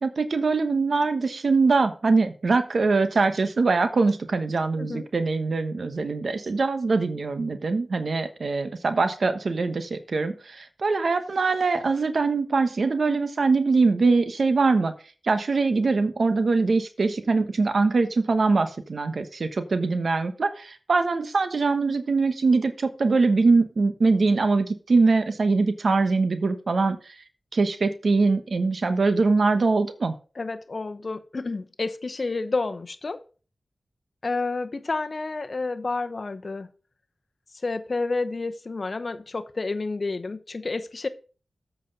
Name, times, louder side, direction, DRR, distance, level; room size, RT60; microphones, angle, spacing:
voice 1, 0.0-14.9 15.2-27.2 27.5-30.1, right 3 dB, 70° right, 10 dB, 1.1 m, -23 dB
voice 2, 30.4-33.2 34.2-36.7 37.6-41.1, left 3 dB, 55° left, 10 dB, 0.9 m, -30 dB
8.1 x 6.0 x 5.4 m, 0.37 s
cardioid pair, 50°, 0 cm